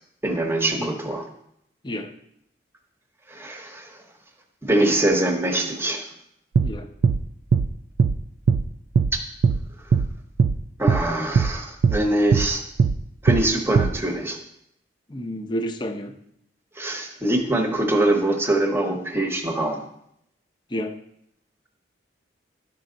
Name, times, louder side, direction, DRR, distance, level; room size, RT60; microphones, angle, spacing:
voice 1, 0.2-1.3 3.3-4.0 4.6-6.1 9.1-9.2 10.8-12.6 13.2-14.4 16.8-19.8, right 1 dB, 15° right, 4 dB, 0.9 m, -23 dB
sound 1, 6.5-6.7 7.0-7.2 7.5-7.7 8.0-8.2 8.5-8.6 9.0-9.1 9.4-9.6 9.9-10.1 10.4-10.6 10.9-11.0 11.3-11.5 11.8-12.0 12.3-12.5 12.8-13.0 13.3-13.4 13.8-13.9, right 5 dB, 85° right, 0.3 m, -18 dB
voice 2, 15.1-16.1 20.7-21.0, equal, 25° left, 7 dB, 0.6 m, -30 dB
10.5 x 5.4 x 3.9 m, 0.75 s
head